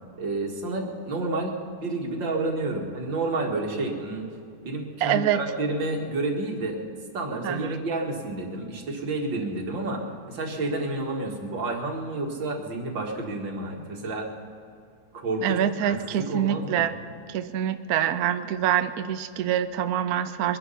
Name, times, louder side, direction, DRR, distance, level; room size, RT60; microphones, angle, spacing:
voice 1, 0.2-4.3 4.6-6.8 7.1-10.0 10.3-14.3 15.1-16.9, right 2 dB, 80° right, 1 dB, 2.7 m, -30 dB
voice 2, 5.0-5.4 7.4-7.7 15.4-16.9 17.3-20.6, right 10 dB, 65° right, 10 dB, 1.0 m, -25 dB
23.0 x 11.0 x 5.6 m, 2.5 s
omnidirectional pair, 2.0 m